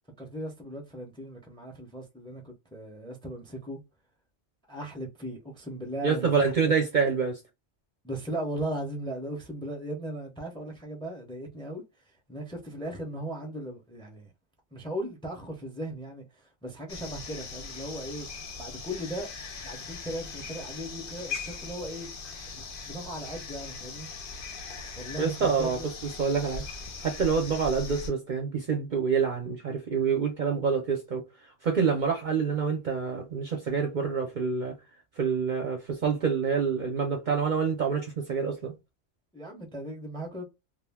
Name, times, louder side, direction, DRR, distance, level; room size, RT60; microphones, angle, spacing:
voice 1, 0.2-3.8 4.7-6.7 8.0-11.8 12.3-14.3 14.7-18.3 18.6-19.3 19.6-22.1 22.5-24.1 25.0-25.3 25.6-25.9 39.3-40.4, right 1 dB, 5° left, 0.4 m, -37 dB
voice 2, 6.0-7.4 25.2-26.6 27.0-34.7 35.2-38.7, right 6 dB, 55° right, 0.6 m, -27 dB
sound 1, 16.9-28.1, left 4 dB, 55° left, 0.7 m, -40 dB
2.5 x 2.1 x 3.4 m
omnidirectional pair, 1.2 m